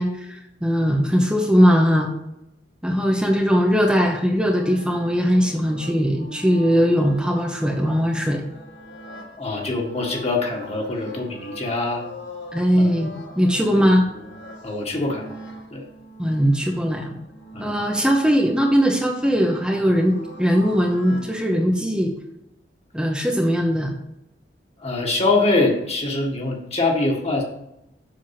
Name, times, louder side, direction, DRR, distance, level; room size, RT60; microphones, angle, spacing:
voice 1, 0.0-2.1 2.8-8.4 12.5-14.1 16.2-17.1 17.6-22.1 22.9-24.0, equal, 5° right, 0 dB, 0.9 m, -20 dB
sound 1, 4.5-21.3, equal, 80° left, 2.4 m, -42 dB
voice 2, 9.4-12.0 12.8-12.9 13.7-13.9 14.6-15.4 15.7-15.8 17.5-17.7 24.8-27.4, left 2 dB, 35° left, 0 dB, 1.8 m, -23 dB
7.6 x 6.4 x 5.8 m, 0.87 s
head